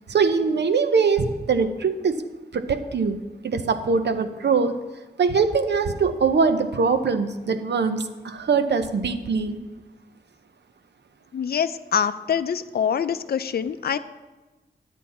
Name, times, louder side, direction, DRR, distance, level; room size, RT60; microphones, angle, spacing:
voice 1, 0.1-2.2 2.5-3.2 3.4-4.8 5.2-9.6, right 5 dB, 80° right, 9 dB, 0.8 m, -22 dB
voice 2, 11.3-14.0, left 7 dB, 65° left, 11 dB, 0.4 m, -25 dB
11.0 x 8.2 x 4.2 m, 1.1 s
wide cardioid pair, 120°, 18 cm